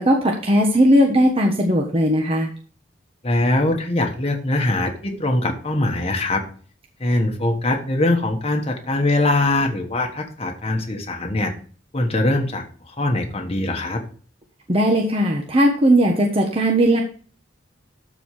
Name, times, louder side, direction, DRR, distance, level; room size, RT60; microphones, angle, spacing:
voice 1, 0.0-2.5 14.7-17.0, equal, 30° right, 1 dB, 1.2 m, -17 dB
voice 2, 3.2-6.4 7.0-11.5 11.9-12.6 13.0-14.0, left 2 dB, 35° left, 3 dB, 1.3 m, -22 dB
13.0 x 4.6 x 4.8 m, 0.44 s
head